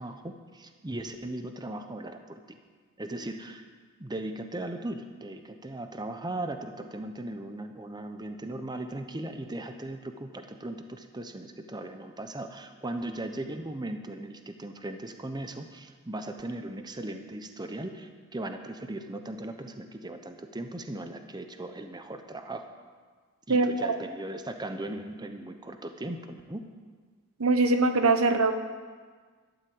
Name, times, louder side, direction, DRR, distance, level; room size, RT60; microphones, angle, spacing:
voice 1, 0.0-2.6 3.0-3.6 4.0-22.7 23.5-26.6, right 1 dB, 20° right, 6 dB, 0.9 m, -38 dB
voice 2, 23.5-24.0 27.4-28.5, right 3 dB, 75° right, 8 dB, 1.1 m, -23 dB
12.0 x 12.0 x 7.8 m, 1.5 s
head